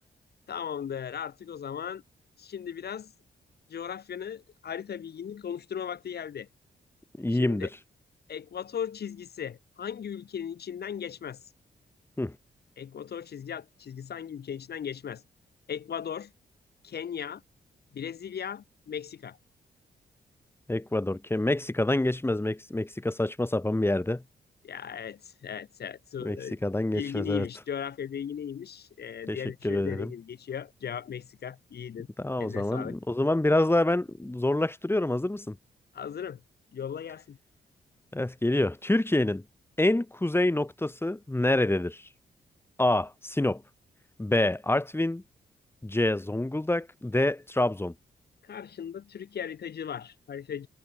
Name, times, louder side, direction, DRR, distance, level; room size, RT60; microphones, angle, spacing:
voice 1, 0.5-2.0 2.4-3.1 3.7-6.5 7.3-7.7 8.3-11.4 12.8-15.2 15.7-16.3 16.8-17.4 17.9-19.4 24.6-26.6 26.9-32.1 32.4-32.9 35.9-36.4 36.7-37.4 48.4-50.7, left 8 dB, 70° left, 3.0 m, -37 dB
voice 2, 7.2-7.7 12.2-12.3 20.7-24.2 26.2-27.5 29.3-29.4 29.6-30.1 32.2-35.6 38.1-39.4 39.8-42.0 42.8-43.6 44.2-45.2 45.8-47.9, left 1 dB, 15° left, 2.8 m, -27 dB
cardioid pair, 60°, 17 cm